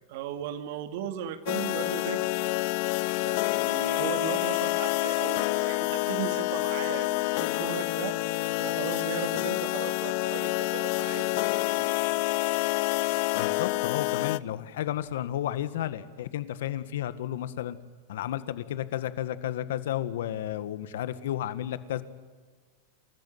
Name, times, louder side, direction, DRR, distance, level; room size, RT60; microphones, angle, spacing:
voice 1, 0.1-2.3 3.2-8.2 8.6-12.0, right 10 dB, 60° right, 9 dB, 2.5 m, -37 dB
sound 1, 1.5-14.4, left 22 dB, 55° left, 0.6 m, -28 dB
voice 2, 13.3-17.8 18.1-22.0, left 12 dB, 75° left, 13 dB, 1.7 m, -32 dB
28.5 x 14.5 x 9.4 m, 1.4 s
supercardioid pair, 140°, 0 cm